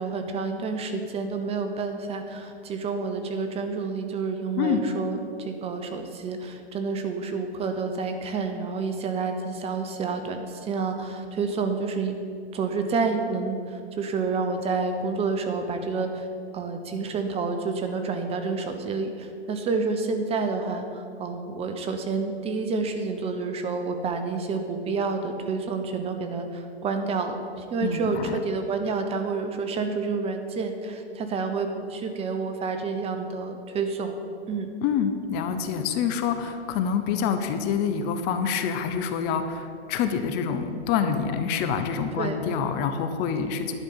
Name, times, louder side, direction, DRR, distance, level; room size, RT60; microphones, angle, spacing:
voice 1, 0.0-12.1 12.5-16.3 16.5-34.1 34.5-34.7 42.2-42.4, right 4 dB, 20° right, 6 dB, 0.8 m, -29 dB
voice 2, 27.8-28.4 34.8-43.7, left 7 dB, 30° left, 8 dB, 0.8 m, -26 dB
11.0 x 5.3 x 8.6 m, 2.4 s
hypercardioid pair, 120°, 33 cm